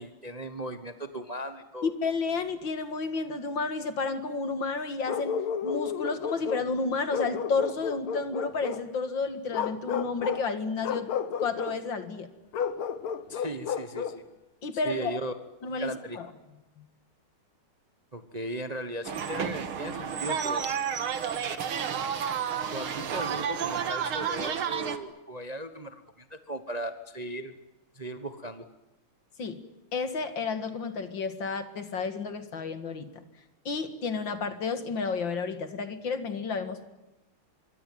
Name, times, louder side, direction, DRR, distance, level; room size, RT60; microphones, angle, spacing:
voice 1, 0.0-1.9 13.3-14.2 14.8-15.3 15.8-16.2 18.1-20.7 22.7-27.5 27.9-28.7, right 1 dB, 25° right, 9 dB, 1.0 m, -37 dB
voice 2, 1.8-11.1 11.4-12.3 14.6-15.2 15.6-16.3 16.8-16.9 29.4-29.6 29.9-33.1 33.7-36.8, left 4 dB, 60° left, 10 dB, 2.6 m, -31 dB
Bark, 5.1-6.7 7.1-8.9 9.5-10.5 10.8-11.8 12.5-14.2, left 7 dB, 75° left, 2.1 m, -32 dB
sound 1, 19.0-25.0, right 7 dB, 75° right, 2.4 m, -31 dB
25.5 x 23.5 x 9.2 m, 1.0 s
omnidirectional pair, 2.3 m